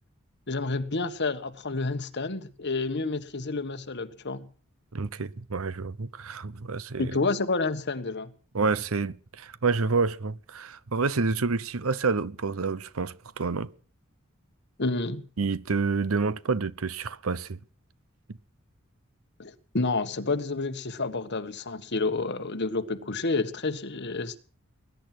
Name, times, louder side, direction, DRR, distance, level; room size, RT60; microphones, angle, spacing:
voice 1, 0.5-4.5 7.0-8.3 14.8-15.2 19.4-24.4, left 3 dB, 55° left, 1.5 m, -29 dB
voice 2, 4.9-7.1 8.5-13.7 15.4-17.6, right 4 dB, 75° right, 0.8 m, -28 dB
20.5 x 11.0 x 6.1 m
head